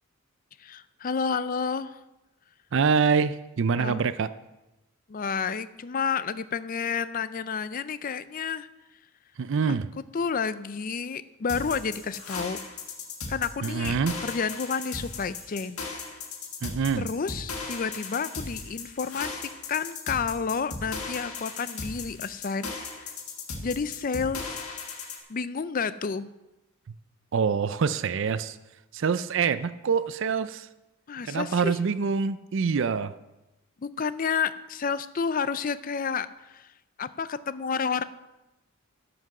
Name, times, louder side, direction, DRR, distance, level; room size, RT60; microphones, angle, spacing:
voice 1, 0.6-2.0 3.7-4.0 5.1-8.7 10.1-12.6 13.3-14.0 14.2-15.8 17.0-23.1 23.6-24.6 25.3-26.3 31.1-31.8 33.8-36.7 37.0-38.0, left 6 dB, 40° left, 15 dB, 0.4 m, -30 dB
voice 2, 2.7-4.3 9.4-9.9 13.6-14.2 16.6-17.1 27.3-28.6 28.9-30.7 31.3-33.1, right 5 dB, 60° right, 13 dB, 0.4 m, -25 dB
sound 1, 11.5-25.2, left 4 dB, 85° left, 1.8 m, -37 dB
12.0 x 6.0 x 6.6 m, 1.0 s
head